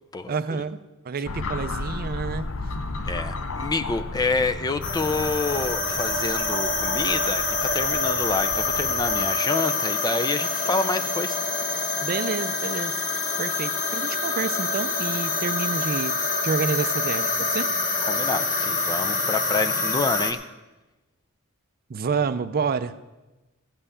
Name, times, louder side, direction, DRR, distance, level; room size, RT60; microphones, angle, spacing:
voice 1, 0.3-0.8 1.0-2.5 12.0-13.0 13.4-17.7 21.9-23.1, right 5 dB, 45° right, 13 dB, 0.4 m, -29 dB
sound 1, 1.3-9.3, left 3 dB, 65° left, 0.8 m, -33 dB
voice 2, 3.1-11.4 18.1-20.4, left 3 dB, 20° left, 9 dB, 0.4 m, -27 dB
sound 2, 4.8-20.3, left 3 dB, 35° left, 1.1 m, -26 dB
15.5 x 5.6 x 8.2 m, 1.1 s
head